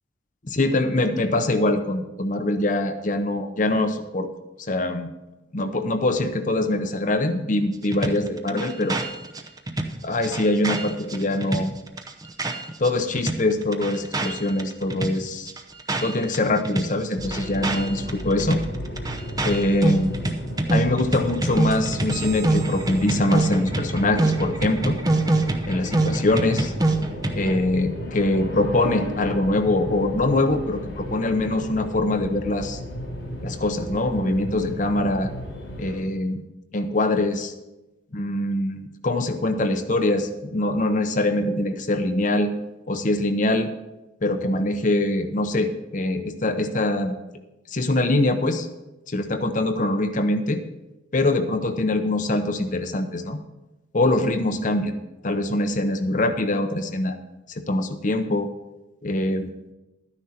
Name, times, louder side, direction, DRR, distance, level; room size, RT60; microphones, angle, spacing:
voice 1, 0.5-4.3 4.7-5.1 5.5-9.0 10.0-11.7 12.8-15.5 16.0-18.6 19.4-20.1 20.7-25.0 25.6-26.7 27.3-32.8 33.4-35.3 35.8-36.4 36.7-37.5 38.1-42.5 42.9-43.7 44.2-47.1 47.7-48.7 49.1-50.6 51.1-53.4 53.9-55.0 55.2-57.2 57.5-58.5 59.0-59.5, left 2 dB, 45° left, 8 dB, 0.7 m, -23 dB
sound 1, 7.9-12.9 13.1-16.4 16.6-27.6, right 2 dB, 20° right, 0.8 m, -26 dB
sound 2, 17.1-35.9, equal, 85° left, 3.5 m, -34 dB
12.0 x 9.9 x 4.3 m, 1.0 s
head